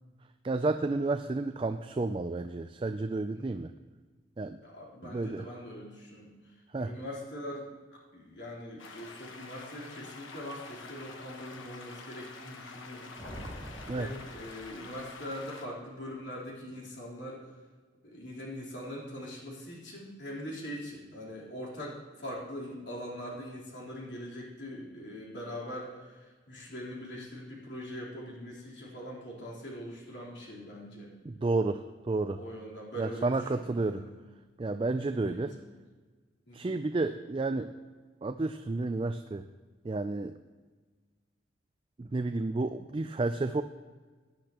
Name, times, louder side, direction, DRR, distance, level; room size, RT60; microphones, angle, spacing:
voice 1, 0.4-3.7 4.4-4.6 5.0-5.5 6.7-6.9 13.9-14.1 31.3-32.4 33.0-34.0 34.6-35.5 36.5-37.7 38.2-39.5 39.8-40.4 42.0-43.6, right 3 dB, 25° right, 8 dB, 0.3 m, -31 dB
voice 2, 4.6-13.2 14.0-17.5 18.0-31.1 32.3-34.1 35.1-35.5 36.5-36.7, equal, 60° left, -5 dB, 3.8 m, -42 dB
sound 1, 8.8-15.7, left 4 dB, 80° left, 1.2 m, -47 dB
sound 2, 13.2-15.1, equal, 15° left, 2.9 m, -45 dB
18.0 x 10.0 x 3.0 m, 1.4 s
head